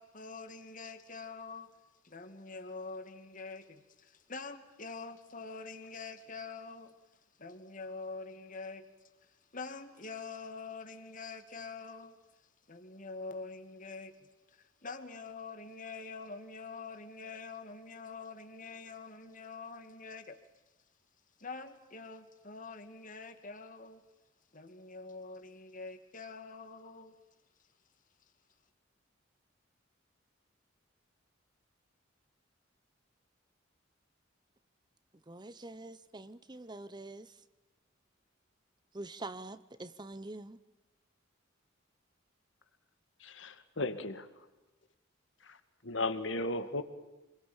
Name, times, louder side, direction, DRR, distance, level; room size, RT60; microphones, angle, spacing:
voice 1, 0.0-1.7 2.0-7.0 7.4-8.9 9.2-12.2 12.7-20.4 21.4-24.0 24.5-27.2, left 4 dB, 40° left, 2.5 m, -45 dB
voice 2, 35.3-37.4 38.9-40.6, right 2 dB, 20° right, 0.9 m, -45 dB
voice 3, 43.2-44.3 45.4-45.6 45.8-46.8, left 2 dB, 65° left, 2.3 m, -35 dB
28.0 x 22.5 x 9.0 m
head